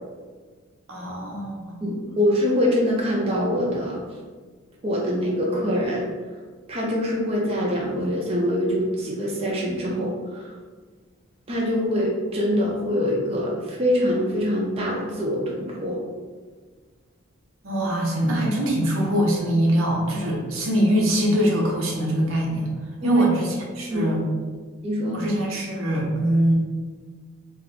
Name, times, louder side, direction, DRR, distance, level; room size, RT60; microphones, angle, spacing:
voice 1, 0.9-1.7 17.6-22.7 23.0-24.2 25.1-26.5, equal, 80° right, -2 dB, 0.7 m, -23 dB
voice 2, 1.8-4.0 4.8-6.1 6.7-10.5 11.5-16.0 23.0-23.3 23.9-24.1 24.8-25.2, equal, 30° right, -4 dB, 0.4 m, -24 dB
2.5 x 2.2 x 3.7 m, 1.5 s
head